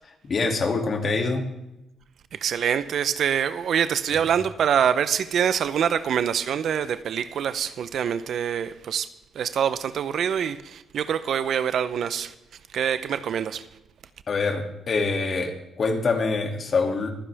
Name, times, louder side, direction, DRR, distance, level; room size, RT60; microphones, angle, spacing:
voice 1, 0.3-1.4 14.3-17.1, left 4 dB, 45° left, 2.5 m, -25 dB
voice 2, 2.3-9.1 9.3-12.3 12.7-13.6, right 8 dB, 65° right, 0.7 m, -25 dB
24.5 x 10.0 x 3.5 m
cardioid pair, 90°, 0 cm